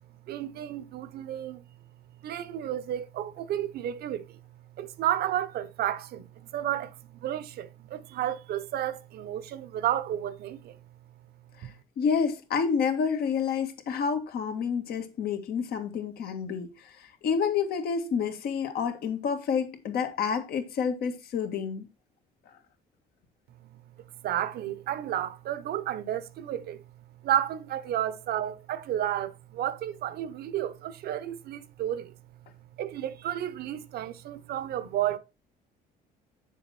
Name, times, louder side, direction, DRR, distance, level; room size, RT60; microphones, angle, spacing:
voice 1, 0.3-1.7 2.2-4.4 4.8-10.8 11.6-11.7 23.6-23.8 24.2-26.8 27.2-32.1 32.8-35.2, right 11 dB, 70° right, 0.9 m, -32 dB
voice 2, 11.6-21.9, left 6 dB, 65° left, 1.8 m, -29 dB
7.1 x 7.1 x 4.3 m
cardioid pair, 110°, 17 cm